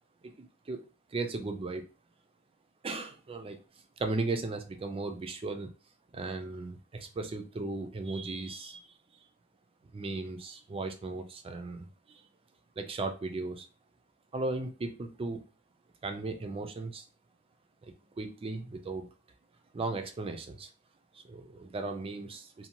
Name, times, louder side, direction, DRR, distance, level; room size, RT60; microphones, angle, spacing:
voice 1, 0.2-0.8 1.1-1.8 2.8-3.6 4.0-5.7 6.1-8.9 9.9-12.2 12.8-13.7 14.3-15.4 16.0-17.1 17.8-19.1 19.7-20.7 21.1-22.7, right 3 dB, 25° right, 6 dB, 0.3 m, -36 dB
2.6 x 2.2 x 2.8 m, 0.35 s
head